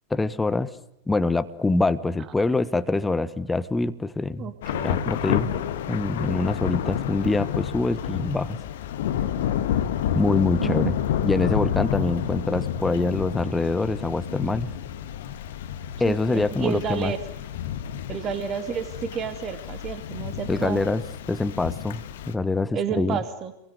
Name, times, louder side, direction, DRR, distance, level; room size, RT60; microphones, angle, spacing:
voice 1, 0.1-0.7 1.1-4.5 4.8-5.5 5.9-8.6 10.1-10.9 11.2-14.7 16.0-17.1 20.5-21.0 21.3-23.2, left 3 dB, 10° left, 13 dB, 1.3 m, -25 dB
voice 2, 4.4-4.9 10.6-11.0 16.1-17.2 18.1-20.8 22.7-23.5, right 7 dB, 30° right, 10 dB, 2.6 m, -30 dB
Thunder / Rain, 4.6-22.3, left 9 dB, 55° left, 1.8 m, -29 dB
28.0 x 23.0 x 8.0 m, 0.81 s
figure-of-eight pair, 90°, 0 cm